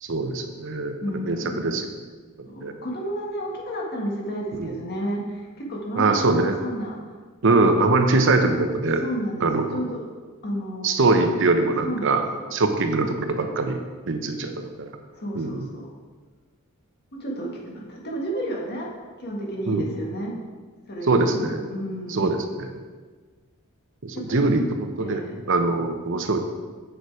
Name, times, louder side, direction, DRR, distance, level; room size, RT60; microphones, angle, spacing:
voice 1, 0.0-1.8 2.6-2.7 4.6-4.7 6.0-6.6 7.4-9.0 9.4-9.8 10.8-12.2 12.5-13.8 14.1-14.5 14.8-14.9 15.4-15.7 19.7-19.8 21.1-21.7 22.1-22.8 24.0-25.2 25.5-26.4, right 3 dB, 60° right, 6 dB, 0.8 m, -22 dB
voice 2, 1.0-1.6 2.5-7.0 9.0-10.1 10.4-11.1 11.8-12.2 15.2-15.9 17.2-18.9 19.2-20.3 20.9-22.3 24.3-24.5 25.0-25.4, equal, 50° left, -1 dB, 1.7 m, -31 dB
8.1 x 6.7 x 4.8 m, 1.4 s
head